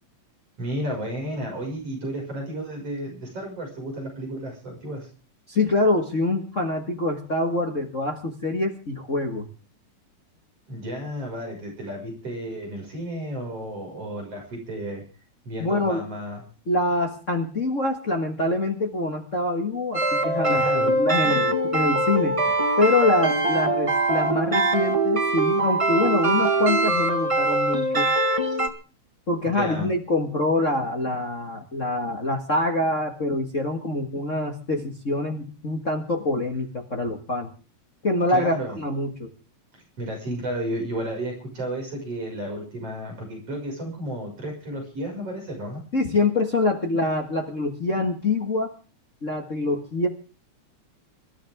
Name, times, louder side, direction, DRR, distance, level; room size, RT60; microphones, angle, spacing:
voice 1, 0.6-5.1 10.7-15.0 15.5-16.4 20.4-21.0 21.2-21.4 29.4-29.9 38.3-38.8 39.7-45.8, equal, 55° right, 0 dB, 7.0 m, -32 dB
voice 2, 5.5-9.4 15.6-16.0 16.7-22.4 22.8-28.1 29.3-37.5 38.0-39.3 45.9-48.7 49.2-50.1, left 2 dB, 30° left, 2 dB, 1.6 m, -25 dB
sound 1, 19.9-28.7, right 2 dB, 25° right, 0.7 m, -22 dB
24.5 x 13.0 x 3.6 m, 0.36 s
omnidirectional pair, 3.3 m